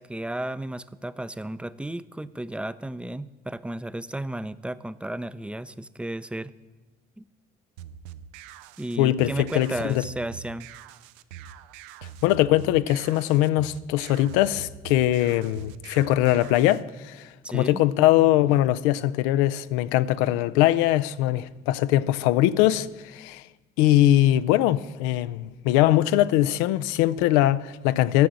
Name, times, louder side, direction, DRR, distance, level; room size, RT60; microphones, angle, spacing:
voice 1, 0.0-6.5 7.2-7.3 8.8-10.7 17.4-17.8, right 1 dB, 5° right, 0.5 m, -33 dB
sound 1, 7.8-16.8, right 9 dB, 85° right, 0.5 m, -44 dB
voice 2, 9.0-10.0 12.2-23.4 23.8-28.3, left 14 dB, 80° left, 0.5 m, -21 dB
10.5 x 6.7 x 7.5 m
hypercardioid pair, 60°, 20 cm